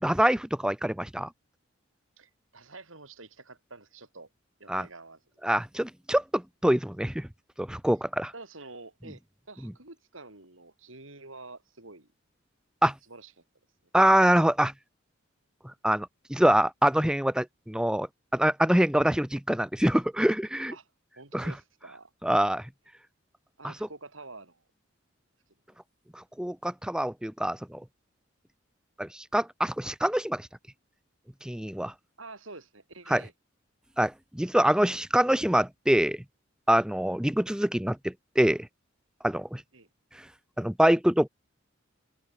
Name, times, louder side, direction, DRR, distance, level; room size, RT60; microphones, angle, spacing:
voice 1, 0.0-1.3 4.7-4.9 5.4-7.3 7.6-8.3 12.8-12.9 13.9-14.7 15.8-18.1 18.3-20.7 21.3-21.5 22.2-22.6 23.6-23.7 26.2-27.8 29.0-30.4 31.4-31.9 33.1-33.2 34.0-36.2 36.7-38.7 39.2-39.6 40.6-41.3, right 1 dB, 5° right, 0.6 m, -25 dB
voice 2, 2.2-4.3 4.6-5.2 8.3-9.2 9.5-12.1 13.1-13.3 20.7-20.9 21.1-22.1 23.6-24.6 32.2-33.3 39.7-39.9, right 3 dB, 80° right, 6.7 m, -47 dB
head